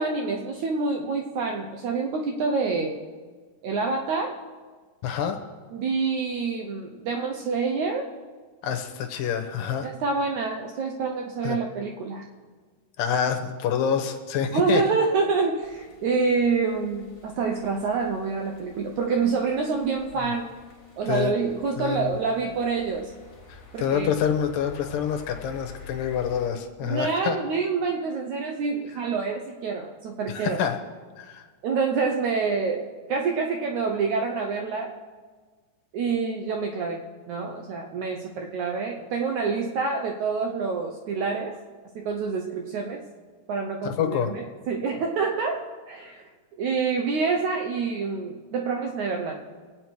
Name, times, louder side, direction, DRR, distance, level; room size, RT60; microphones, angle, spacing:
voice 1, 0.0-3.0 3.6-4.4 5.7-8.1 9.8-12.2 14.5-20.5 21.0-23.1 23.7-24.1 26.8-30.6 31.6-34.9 35.9-41.6 42.0-43.0 43.5-46.2 46.6-49.4, right 4 dB, 75° right, 3 dB, 1.8 m, -27 dB
voice 2, 5.0-5.4 8.6-9.9 11.4-11.6 13.0-14.8 21.1-21.3 21.8-22.1 23.5-27.4 30.3-30.8 31.2-31.5 43.8-44.3, left 8 dB, 75° left, 5 dB, 2.5 m, -27 dB
sound 1, 15.6-26.5, left 6 dB, 35° left, 1.1 m, -48 dB
23.0 x 8.7 x 4.6 m, 1.5 s
omnidirectional pair, 4.3 m